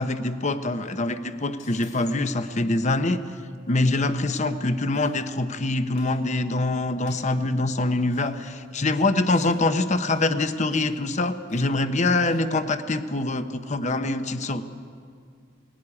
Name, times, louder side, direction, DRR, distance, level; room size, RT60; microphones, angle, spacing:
voice 1, 0.0-3.2 3.7-14.6, left 2 dB, 40° left, 10 dB, 0.9 m, -24 dB
sound 1, 1.6-2.2 4.9-5.4 6.0-6.2 7.1-7.3 8.1-8.3 8.9-9.6 10.1-10.4 10.7-10.9 11.5-11.7 12.2-12.5, left 4 dB, 75° left, 6.4 m, -52 dB
19.0 x 16.5 x 9.9 m, 2.3 s
head